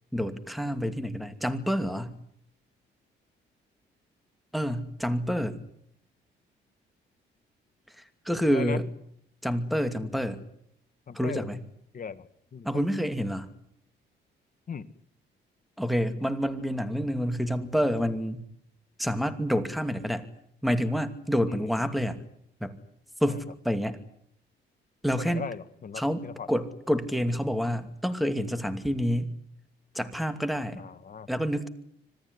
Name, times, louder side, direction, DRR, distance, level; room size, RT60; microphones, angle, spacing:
voice 1, 0.1-2.2 4.5-5.6 8.2-8.9 9.4-10.4 11.1-11.6 12.6-13.5 15.8-18.4 19.0-20.3 20.6-22.2 22.6-22.7 23.2-24.0 25.0-25.5 26.0-29.3 29.9-30.8 31.3-31.7, equal, ahead, 9 dB, 2.6 m, -28 dB
voice 2, 8.5-8.8 11.1-11.5 11.9-12.3 12.5-12.8 14.7-14.9 21.5-21.8 23.3-23.4 25.2-26.5 30.8-31.3, left 6 dB, 45° left, 12 dB, 1.7 m, -38 dB
26.0 x 18.0 x 9.8 m, 0.71 s
cardioid pair, 90°, 20 cm